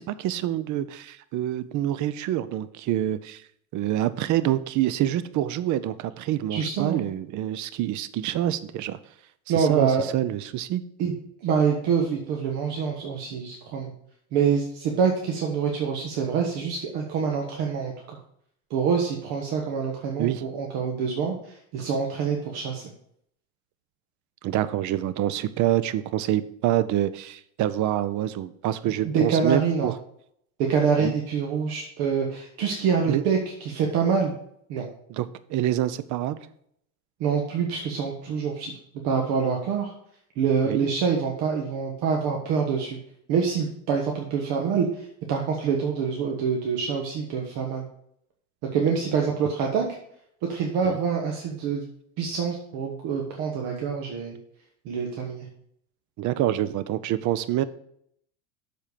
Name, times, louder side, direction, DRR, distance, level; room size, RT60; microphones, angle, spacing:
voice 1, 0.0-3.4 3.7-9.0 9.5-10.8 20.2-20.4 24.4-29.9 31.0-31.1 33.1-33.2 34.8-34.9 35.1-36.5 40.6-40.9 50.8-51.0 56.2-57.6, right 13 dB, 45° right, 15 dB, 0.6 m, -26 dB
voice 2, 6.5-7.0 9.5-10.1 11.0-11.1 11.4-13.9 14.3-18.2 18.7-22.8 28.8-29.9 30.7-34.3 34.7-34.9 37.2-38.7 39.0-39.9 40.4-43.0 43.3-47.9 48.7-49.8 50.5-51.9 52.2-54.4 54.8-55.5, right 6 dB, 60° right, 0 dB, 1.4 m, -26 dB
7.3 x 4.5 x 6.6 m, 0.70 s
supercardioid pair, 105°, 43 cm